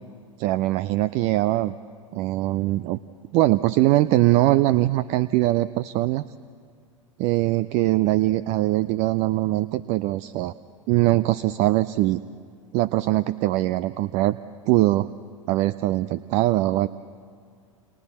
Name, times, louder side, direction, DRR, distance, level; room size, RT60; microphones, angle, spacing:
voice 1, 0.4-1.7 2.1-3.0 3.3-6.2 7.2-10.5 10.9-12.2 12.7-14.4 14.7-15.1 15.5-16.9, right 17 dB, 40° right, 17 dB, 0.5 m, -22 dB
30.0 x 28.5 x 4.3 m, 2.2 s
figure-of-eight pair, 90°, 17 cm